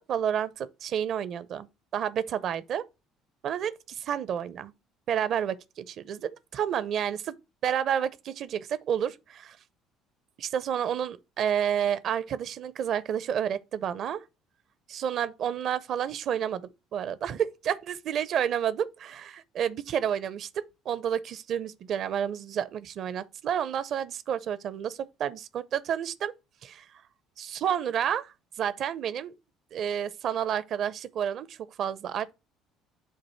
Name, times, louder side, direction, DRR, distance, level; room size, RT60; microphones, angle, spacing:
voice 1, 0.0-1.7 1.9-2.8 3.4-4.7 5.1-7.3 7.6-9.6 10.4-14.2 14.9-26.3 26.6-26.9 27.4-29.3 29.7-32.3, right 9 dB, 55° right, 0.6 m, -30 dB
7.3 x 2.6 x 5.4 m
hypercardioid pair, 60°, 0 cm